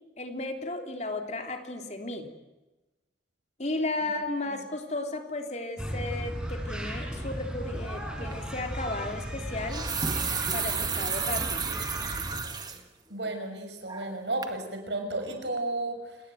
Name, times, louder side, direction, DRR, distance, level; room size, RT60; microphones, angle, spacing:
voice 1, 0.2-2.3 3.6-9.9 10.5-11.7, left 2 dB, 40° left, 4 dB, 3.4 m, -34 dB
sound 1, 5.8-12.4, equal, 5° right, 6.0 m, -35 dB
sound 2, 8.3-8.5 9.5-12.8 13.3-13.4 13.9-14.2 14.4-14.6, right 6 dB, 20° right, 1.9 m, -32 dB
voice 2, 13.1-16.2, right 2 dB, 85° right, 6 dB, 6.1 m, -33 dB
29.0 x 19.5 x 9.3 m, 1.1 s
head